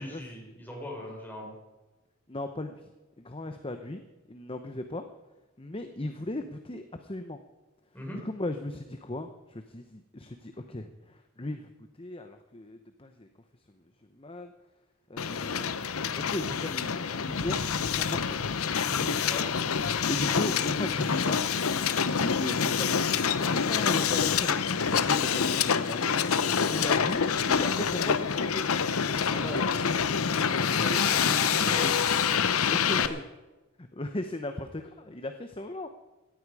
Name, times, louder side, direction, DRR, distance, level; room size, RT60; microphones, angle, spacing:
voice 1, 0.0-1.5 7.9-8.2 18.8-19.5 26.6-26.9 29.3-29.6 30.6-31.9 32.6-33.2, equal, 10° left, -1 dB, 5.0 m, -39 dB
voice 2, 2.3-2.8 3.2-4.0 4.3-5.0 5.6-7.4 8.2-11.7 12.0-13.3 14.1-14.5 15.1-15.7 16.1-18.4 20.1-21.4 22.2-26.2 26.7-27.2 27.5-28.7 30.5-30.7 31.0-31.7 32.7-33.2 33.8-35.9, left 1 dB, 25° left, 7 dB, 0.9 m, -37 dB
Hiss, 15.2-33.1, left 6 dB, 85° left, 0.8 m, -27 dB
18.0 x 14.5 x 4.9 m, 1.1 s
head